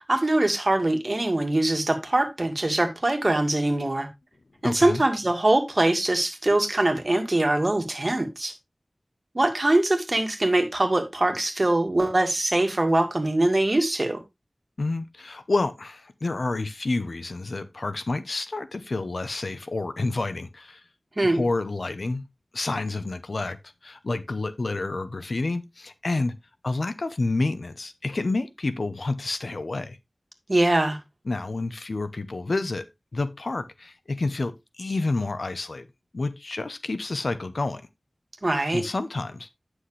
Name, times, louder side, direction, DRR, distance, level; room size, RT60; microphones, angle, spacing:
voice 1, 0.1-4.1 4.6-8.5 9.3-14.2 21.2-21.4 30.5-31.0 38.4-38.8, right 2 dB, 45° right, 2.1 m, -23 dB
voice 2, 4.6-5.0 14.8-20.8 21.3-22.2 22.5-23.6 23.8-26.3 26.6-30.0 31.3-32.9 33.1-35.9 36.1-37.8 38.7-39.5, left 2 dB, 80° left, 0.8 m, -29 dB
9.6 x 6.3 x 3.3 m
wide cardioid pair, 55°, 0 cm